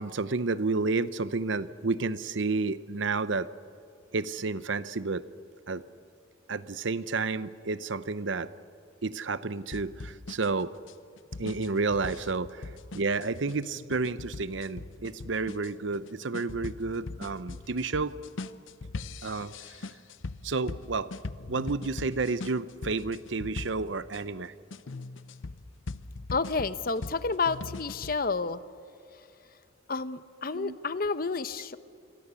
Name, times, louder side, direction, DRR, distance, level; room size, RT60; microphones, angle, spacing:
voice 1, 0.0-3.5 4.1-5.2 5.7-5.8 6.5-8.5 9.0-10.7 11.4-18.2 19.2-19.9 20.4-21.1 21.5-24.5 30.5-30.8, right 3 dB, 75° right, 15 dB, 0.8 m, -31 dB
sound 1, 9.7-24.2 24.7-28.2, left 3 dB, 80° left, 0.7 m, -41 dB
voice 2, 26.3-28.6 29.9-31.8, left 4 dB, 50° left, 14 dB, 0.8 m, -30 dB
28.0 x 22.5 x 7.0 m, 2.7 s
head